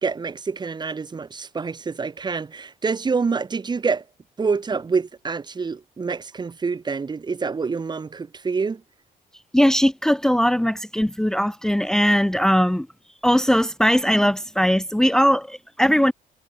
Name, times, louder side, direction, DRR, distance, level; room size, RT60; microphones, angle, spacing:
voice 1, 0.0-4.0 4.4-8.8, right 5 dB, 25° right, 1.7 m, -26 dB
voice 2, 9.5-12.9 13.2-16.1, equal, 5° left, 1.1 m, -19 dB
cardioid pair, 110°, 17 cm